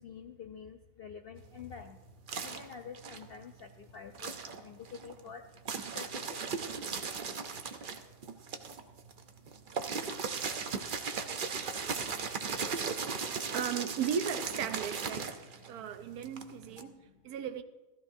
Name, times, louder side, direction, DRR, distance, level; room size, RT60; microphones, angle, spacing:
voice 1, 0.0-2.0 2.4-5.4 5.9-6.1 16.8-16.9, left 7 dB, 70° left, 0.5 m, -47 dB
sound 1, 1.4-3.7 4.1-16.8, right 5 dB, 45° right, 0.7 m, -38 dB
voice 2, 13.5-15.3 15.7-17.6, right 8 dB, 80° right, 1.2 m, -36 dB
15.5 x 14.0 x 2.7 m
omnidirectional pair, 1.6 m